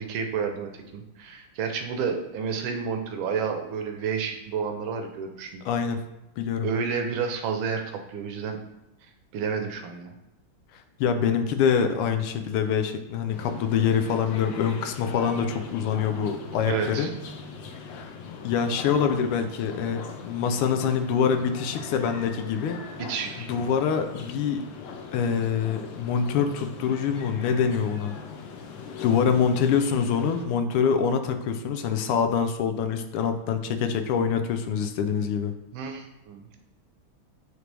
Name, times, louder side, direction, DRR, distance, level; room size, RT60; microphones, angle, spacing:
voice 1, 0.0-5.6 6.6-7.8 8.1-8.6 9.3-10.1 16.6-17.1 23.0-23.5 35.7-36.6, right 6 dB, 70° right, 4 dB, 1.4 m, -30 dB
voice 2, 5.6-6.0 6.4-6.7 11.0-17.1 17.9-18.1 18.4-22.8 23.4-24.6 25.1-28.2 29.0-35.5, left 7 dB, 85° left, 7 dB, 1.6 m, -25 dB
sound 1, 13.3-30.5, left 5 dB, 70° left, 1.3 m, -40 dB
8.9 x 3.3 x 3.4 m, 0.93 s
omnidirectional pair, 2.4 m